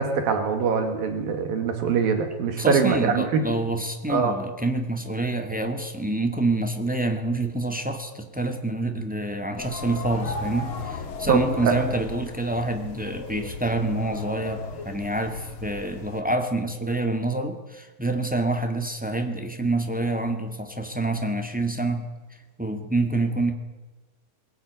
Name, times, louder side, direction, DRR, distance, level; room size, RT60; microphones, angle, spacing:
voice 1, 0.0-3.4 4.1-4.4 11.3-11.8, right 5 dB, 75° right, 7 dB, 3.8 m, -23 dB
voice 2, 2.6-22.1 22.6-23.5, right 2 dB, 15° right, 4 dB, 0.3 m, -27 dB
sound 1, 9.6-16.2, left 4 dB, 40° left, 2.3 m, -36 dB
22.5 x 18.5 x 9.4 m, 1.2 s
omnidirectional pair, 4.2 m